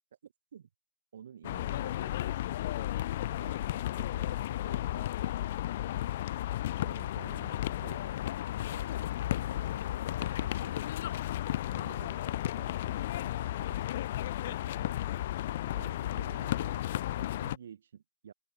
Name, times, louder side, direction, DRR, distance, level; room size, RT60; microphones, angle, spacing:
voice 1, 0.2-0.7 1.1-2.7 3.4-5.1 6.8-8.1 8.7-8.9 9.4-10.9 11.4-13.8 14.4-18.3, right 8 dB, 50° right, 7.5 m, -52 dB
sound 1, 1.4-17.6, left 13 dB, 35° left, 0.7 m, -34 dB
hypercardioid pair, 175°, 0 cm